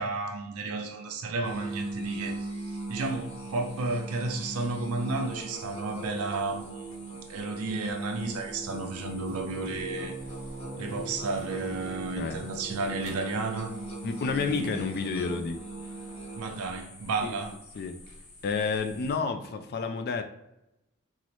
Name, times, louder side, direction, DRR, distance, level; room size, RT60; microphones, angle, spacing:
voice 1, 0.0-10.1 10.8-13.7 14.3-14.9 16.4-17.6, right 3 dB, 85° right, 3 dB, 0.5 m, -32 dB
sound 1, 1.4-19.2, left 2 dB, 65° left, 0.9 m, -51 dB
Musical instrument, 1.4-17.0, right 3 dB, 25° left, 1.5 m, -40 dB
sound 2, 6.0-6.1 7.8-8.6 8.9-14.4 15.2-16.5, right 2 dB, 20° right, 0.5 m, -46 dB
voice 2, 14.0-15.6 17.2-17.4 17.8-17.9 18.4-20.2, left 4 dB, 45° left, 7 dB, 0.3 m, -30 dB
3.8 x 2.1 x 2.9 m, 0.87 s
head